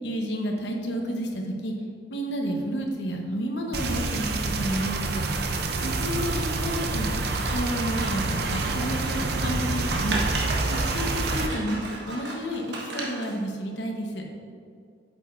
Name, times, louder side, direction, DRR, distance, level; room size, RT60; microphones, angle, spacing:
voice 1, 0.0-1.7 2.1-4.2 4.6-5.2 5.8-7.1 7.5-10.2 10.7-11.8 12.1-12.7 12.9-14.2, equal, 80° left, 2 dB, 1.1 m, -30 dB
sound 1, 3.7-11.5, right 3 dB, 60° right, 0.6 m, -27 dB
Scissors, 7.2-13.4, right 2 dB, 80° right, 1.3 m, -35 dB
8.4 x 7.4 x 2.6 m, 2.3 s
head